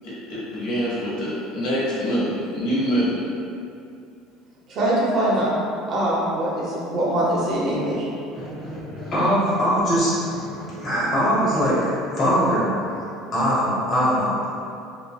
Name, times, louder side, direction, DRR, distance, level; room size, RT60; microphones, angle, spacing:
voice 1, 0.0-3.2, equal, 75° left, -8 dB, 1.0 m, -25 dB
voice 2, 4.7-5.5 5.9-8.1, right 1 dB, 45° right, -6 dB, 0.8 m, -23 dB
voice 3, 8.3-13.0 13.3-14.4, equal, 40° left, -9 dB, 1.3 m, -22 dB
3.7 x 2.1 x 2.3 m, 2.6 s
cardioid pair, 125°, 0 cm